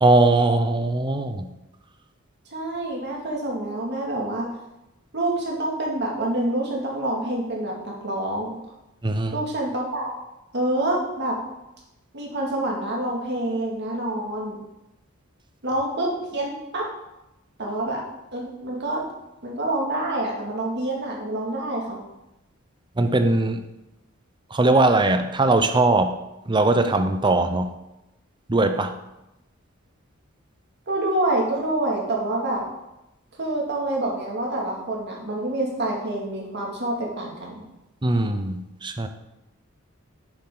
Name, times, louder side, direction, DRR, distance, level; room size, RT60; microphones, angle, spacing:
voice 1, 0.0-1.5 9.0-9.4 23.0-23.6 24.5-26.1 26.5-27.7 28.5-28.9 38.0-39.1, right 2 dB, 20° right, 7 dB, 0.7 m, -20 dB
voice 2, 2.5-4.5 5.1-8.6 9.3-10.1 10.5-11.4 12.1-14.6 15.6-16.9 17.6-18.0 18.3-19.0 19.4-22.0 30.9-32.6 33.4-37.6, right 1 dB, 55° right, -2 dB, 2.2 m, -27 dB
8.9 x 7.6 x 3.8 m, 0.92 s
head